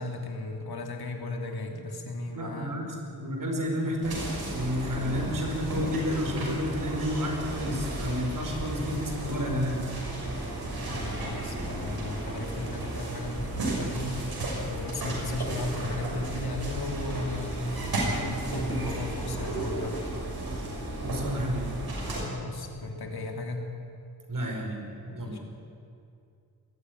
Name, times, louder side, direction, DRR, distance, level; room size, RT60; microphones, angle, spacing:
voice 1, 0.0-2.8 10.6-14.4 14.7-17.7 18.1-20.1 22.2-23.7 25.1-25.4, left 2 dB, 80° left, 3 dB, 2.9 m, -35 dB
voice 2, 2.3-9.9 21.0-21.7 24.3-25.4, equal, 60° right, 1 dB, 5.0 m, -31 dB
sound 1, 4.0-22.2, right 1 dB, 75° right, 6.6 m, -34 dB
21.0 x 15.0 x 9.5 m, 2.5 s
wide cardioid pair, 105°, 37 cm